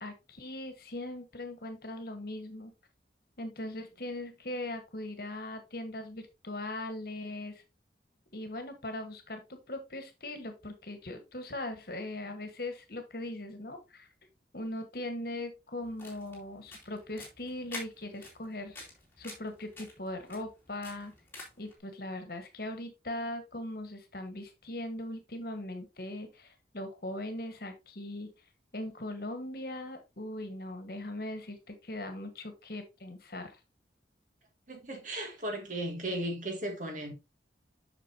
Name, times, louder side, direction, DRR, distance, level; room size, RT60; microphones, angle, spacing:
voice 1, 0.0-2.7 3.4-7.6 8.3-14.1 14.5-18.8 19.2-21.1 21.6-28.3 28.7-33.6, left 1 dB, 55° left, 1.4 m, -40 dB
sound 1, 15.8-21.7, left 2 dB, 15° left, 2.6 m, -48 dB
voice 2, 34.7-37.1, right 1 dB, 45° right, 2.1 m, -36 dB
7.7 x 6.1 x 2.8 m
head